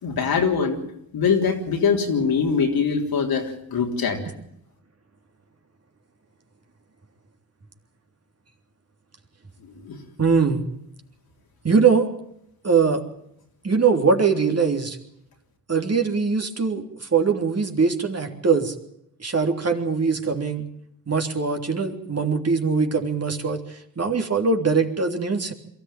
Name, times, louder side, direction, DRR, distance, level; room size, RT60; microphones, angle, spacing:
voice 1, 0.0-0.8 1.1-4.2 9.6-10.0, left 5 dB, 80° left, 2 dB, 3.7 m, -23 dB
voice 2, 10.2-10.6 11.6-12.1 12.6-13.0 13.6-15.0 15.7-18.7 19.2-20.7 21.1-25.5, right 5 dB, 45° right, 4 dB, 3.4 m, -22 dB
23.0 x 14.0 x 9.2 m, 0.75 s
supercardioid pair, 45°, 36 cm